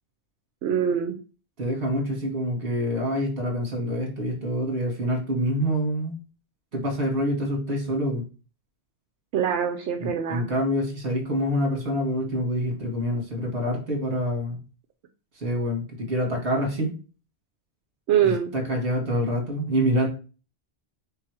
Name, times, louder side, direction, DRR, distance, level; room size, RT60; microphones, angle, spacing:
voice 1, 0.6-1.2 9.3-10.5 18.1-18.5, right 9 dB, 75° right, 6 dB, 0.9 m, -24 dB
voice 2, 1.6-6.2 6.7-8.2 10.0-14.6 15.4-16.9 18.2-20.1, equal, 55° right, 2 dB, 1.7 m, -26 dB
3.6 x 3.2 x 4.6 m, 0.35 s
omnidirectional pair, 1.2 m